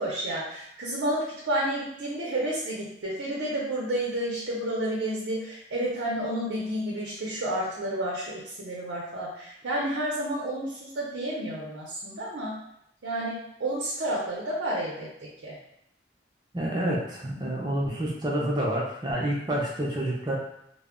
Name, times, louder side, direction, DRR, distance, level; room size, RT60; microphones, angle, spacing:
voice 1, 0.0-12.6 13.0-15.1 15.4-15.6, right 1 dB, 80° right, -4 dB, 0.6 m, -30 dB
voice 2, 16.5-20.3, right 1 dB, 25° right, -4 dB, 0.4 m, -28 dB
2.2 x 2.0 x 3.5 m, 0.76 s
head